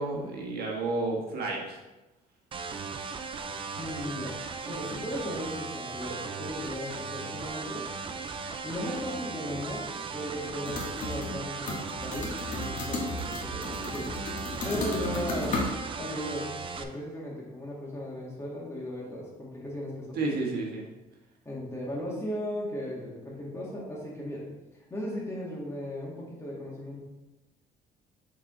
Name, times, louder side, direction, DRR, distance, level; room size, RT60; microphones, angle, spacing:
voice 1, 0.0-1.8 20.1-20.9, right 3 dB, 80° right, -1 dB, 1.5 m, -31 dB
sound 1, 2.5-16.8, right 5 dB, 35° right, 0.5 m, -37 dB
voice 2, 3.8-4.4 4.7-7.9 8.6-14.1 14.6-15.7 16.0-16.5 16.8-20.4 21.5-24.5 24.9-27.0, equal, 15° left, -4 dB, 1.9 m, -36 dB
sound 2, 10.7-11.4 11.7-15.7, left 2 dB, 55° left, 1.5 m, -34 dB
6.6 x 4.1 x 3.8 m, 1.1 s
cardioid pair, 125°, 16 cm